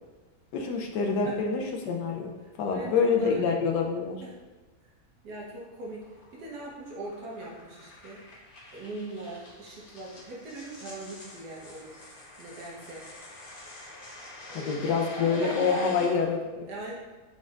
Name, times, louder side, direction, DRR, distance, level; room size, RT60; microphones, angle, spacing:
voice 1, 0.5-2.3 2.6-4.2 14.5-16.7, left 5 dB, 85° left, 1 dB, 1.2 m, -27 dB
voice 2, 2.4-3.3 4.2-4.3 5.2-6.1 6.3-8.2 8.7-12.1 12.4-13.0 14.5-16.1 16.7-16.9, right 2 dB, 75° right, -4 dB, 1.5 m, -40 dB
sound 1, 5.4-16.1, left 2 dB, 65° left, 1.5 m, -47 dB
4.5 x 4.3 x 2.4 m, 1.3 s
omnidirectional pair, 1.8 m